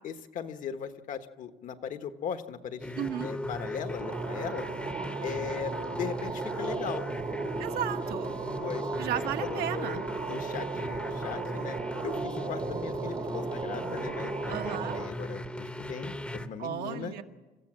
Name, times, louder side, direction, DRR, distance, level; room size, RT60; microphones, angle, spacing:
voice 1, 0.0-4.7 5.2-7.0 8.6-8.9 9.4-17.1, left 7 dB, 55° left, 9 dB, 1.3 m, -38 dB
sound 1, 2.8-16.5, left 1 dB, 5° left, 0.9 m, -37 dB
voice 2, 3.0-3.3 7.6-8.3 9.0-10.0 14.5-15.0 16.6-17.2, right 10 dB, 75° right, 5 dB, 1.4 m, -34 dB
sound 2, 4.0-15.1, right 6 dB, 30° right, 1.0 m, -36 dB
29.5 x 15.0 x 7.5 m, 1.2 s
cardioid pair, 160°, 16 cm